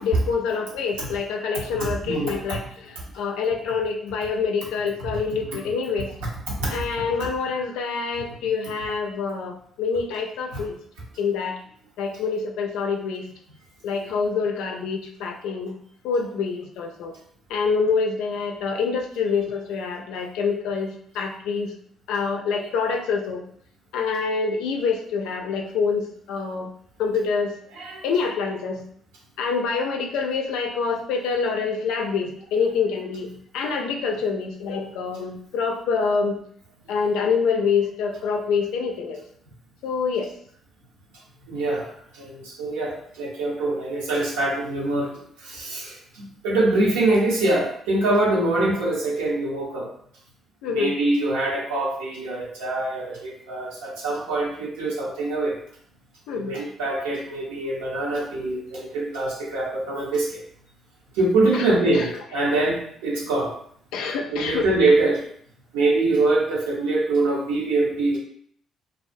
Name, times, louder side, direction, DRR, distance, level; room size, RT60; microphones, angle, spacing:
voice 1, 0.0-6.1 6.7-10.7 11.2-11.6 12.0-13.2 13.8-15.8 16.0-17.1 17.5-21.7 22.1-23.4 23.9-26.7 27.0-27.6 28.0-28.8 29.4-36.4 36.9-39.2 39.8-40.3 50.6-51.0 56.3-56.5 61.5-61.7 61.9-62.1 63.9-64.7, left 5 dB, 75° left, 3 dB, 0.3 m, -26 dB
voice 2, 1.8-2.3 5.0-5.2 6.6-6.9 10.5-10.6 27.7-28.0 41.5-41.9 42.1-49.9 50.7-55.6 56.3-60.4 61.1-63.5 64.3-65.2 65.7-68.2, right 2 dB, 85° right, -4 dB, 0.7 m, -24 dB
2.3 x 2.1 x 2.5 m, 0.63 s
hypercardioid pair, 50°, 0 cm